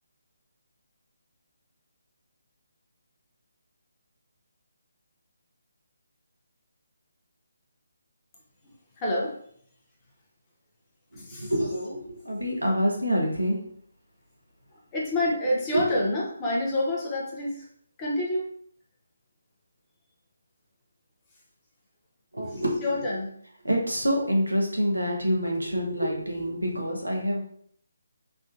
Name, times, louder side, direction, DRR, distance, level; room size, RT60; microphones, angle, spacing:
voice 1, 9.0-9.4 11.2-11.5 14.7-17.7 18.0-18.4 22.5-23.3, left 1 dB, 20° left, -4 dB, 0.8 m, -28 dB
voice 2, 11.1-13.6 15.7-15.8 22.3-23.2 23.6-27.4, equal, 85° right, -1 dB, 1.0 m, -27 dB
3.5 x 2.6 x 2.5 m, 0.63 s
figure-of-eight pair, 145°, 0 cm